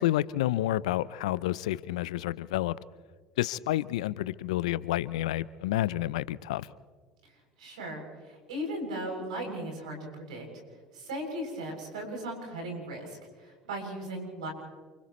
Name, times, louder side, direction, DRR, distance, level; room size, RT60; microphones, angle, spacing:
voice 1, 0.0-2.8 3.4-6.7, left 14 dB, 75° left, 19 dB, 0.6 m, -29 dB
voice 2, 7.6-10.5 10.9-14.5, right 1 dB, 80° right, 1 dB, 7.7 m, -37 dB
30.0 x 28.0 x 3.2 m, 1.5 s
hypercardioid pair, 70°, 4 cm